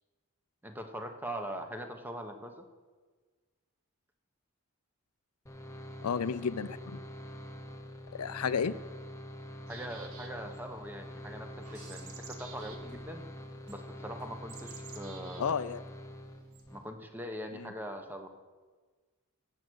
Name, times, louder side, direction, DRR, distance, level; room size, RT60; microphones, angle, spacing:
voice 1, 0.6-2.6 9.7-13.2 13.7-15.5 16.7-18.3, equal, 10° right, 5 dB, 1.0 m, -42 dB
sound 1, 5.5-16.8, equal, 15° left, 0.9 m, -45 dB
voice 2, 6.0-7.0 8.1-8.7 15.4-15.8 17.6-17.7, left 6 dB, 80° left, 15 dB, 0.5 m, -32 dB
sound 2, 9.7-10.6 11.6-12.8 13.7-13.8 14.5-15.4 16.5-16.6, right 6 dB, 65° right, 1.6 m, -50 dB
sound 3, 11.6-13.3 13.7-14.3 15.9-16.0, right 2 dB, 85° right, 3.7 m, -57 dB
15.5 x 7.7 x 6.3 m, 1.4 s
head